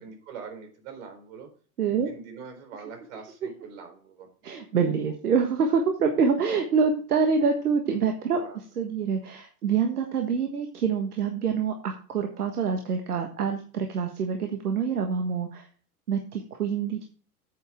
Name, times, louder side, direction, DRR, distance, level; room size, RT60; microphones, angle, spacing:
voice 1, 0.0-1.5 2.0-4.3 4.6-4.8 8.3-8.6, right 5 dB, 60° right, 5 dB, 4.0 m, -43 dB
voice 2, 1.8-2.1 4.4-8.4 8.8-15.7 16.1-17.0, right 6 dB, 80° right, 4 dB, 1.5 m, -26 dB
9.3 x 8.5 x 3.6 m, 0.42 s
figure-of-eight pair, 90°, 45 cm